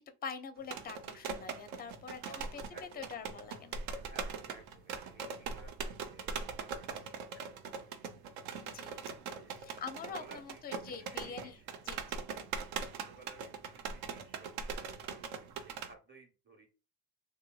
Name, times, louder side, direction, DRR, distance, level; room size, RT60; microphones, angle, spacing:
voice 1, 0.0-2.6 2.9-3.7 8.6-9.0 9.6-12.0, left 6 dB, 20° left, 9 dB, 0.4 m, -45 dB
sound 1, 0.6-15.9, right 5 dB, 65° right, 0.7 m, -41 dB
voice 2, 2.2-3.1 4.0-7.9 9.3-9.6 10.1-11.7 12.9-14.5 14.8-15.3 15.6-16.7, right 2 dB, 20° right, 3 dB, 1.0 m, -57 dB
2.9 x 2.5 x 2.3 m, 0.32 s
supercardioid pair, 75°, 48 cm